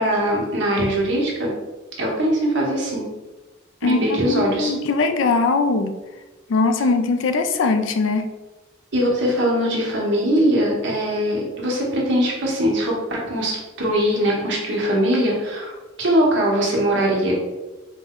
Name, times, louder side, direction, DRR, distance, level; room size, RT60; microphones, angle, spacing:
voice 1, 0.0-1.5 2.0-3.1 3.8-4.7 8.9-17.3, equal, 70° right, -3 dB, 1.1 m, -21 dB
voice 2, 3.8-6.0 6.5-8.2, left 3 dB, 75° left, 8 dB, 0.4 m, -20 dB
4.2 x 2.2 x 3.6 m, 1.1 s
head